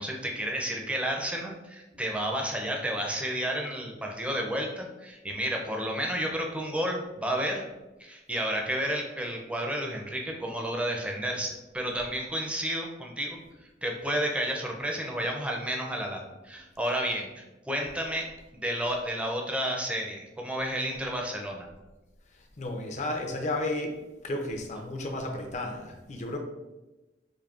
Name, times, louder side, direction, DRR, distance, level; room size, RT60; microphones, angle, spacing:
voice 1, 0.0-7.6 8.0-13.4 13.8-18.3 18.6-21.7, equal, 5° right, 0 dB, 0.5 m, -31 dB
voice 2, 22.6-23.9 24.2-26.4, left 1 dB, 40° left, 2 dB, 0.5 m, -33 dB
5.1 x 2.6 x 2.4 m, 1.1 s
head